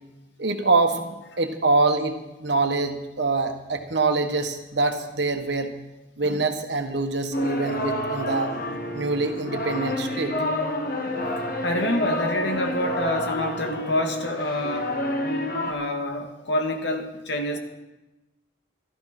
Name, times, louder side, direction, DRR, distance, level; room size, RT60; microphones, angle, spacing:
voice 1, 0.4-5.7 6.2-8.5 8.9-10.3 10.9-11.5, right 3 dB, 65° right, 5 dB, 1.5 m, -25 dB
sound 1, 7.3-15.7, left 1 dB, 50° left, 1.4 m, -29 dB
voice 2, 11.6-15.0 15.7-17.6, left 1 dB, 70° left, 4 dB, 1.8 m, -27 dB
13.0 x 12.5 x 6.0 m, 1.0 s
head